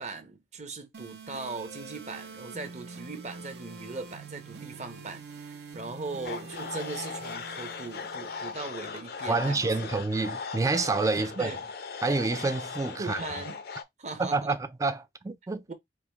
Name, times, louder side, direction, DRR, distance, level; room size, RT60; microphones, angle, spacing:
voice 1, 0.0-9.9 11.2-11.6 13.0-13.6 14.0-14.6 15.7-15.8, right 3 dB, 40° right, 0.9 m, -39 dB
sound 1, 0.9-8.9, right 4 dB, 65° right, 0.8 m, -45 dB
sound 2, 6.2-13.8, left 5 dB, 60° left, 0.5 m, -38 dB
voice 2, 9.3-11.5 12.0-13.2 14.2-15.7, right 3 dB, 20° right, 0.3 m, -28 dB
4.7 x 2.1 x 3.4 m
head